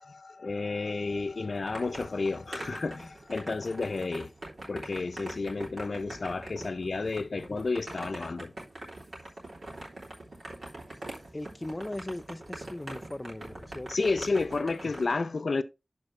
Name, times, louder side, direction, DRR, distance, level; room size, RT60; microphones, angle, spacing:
voice 1, 0.0-4.3 4.7-8.5 13.9-15.6, left 3 dB, 80° left, 0.6 m, -31 dB
sound 1, 1.1-15.1, right 1 dB, 85° right, 3.3 m, -43 dB
voice 2, 11.3-14.1, left 1 dB, 25° left, 0.6 m, -39 dB
11.5 x 4.4 x 3.3 m
wide cardioid pair, 65°, 0 cm